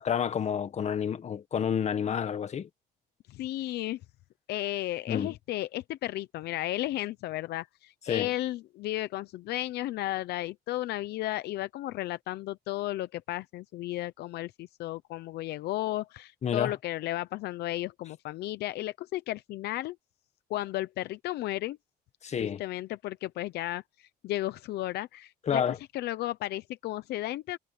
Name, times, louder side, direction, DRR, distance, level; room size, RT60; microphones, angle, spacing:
voice 1, 0.0-2.7 5.1-5.3 8.1-8.3 16.4-16.7 22.2-22.6 25.5-25.8, left 8 dB, 40° left, 1.6 m, -29 dB
voice 2, 3.3-4.0 4.5-20.0 20.5-21.8 22.4-25.6 25.9-27.6, left 15 dB, 75° left, 0.8 m, -34 dB
cardioid pair, 110°, 17 cm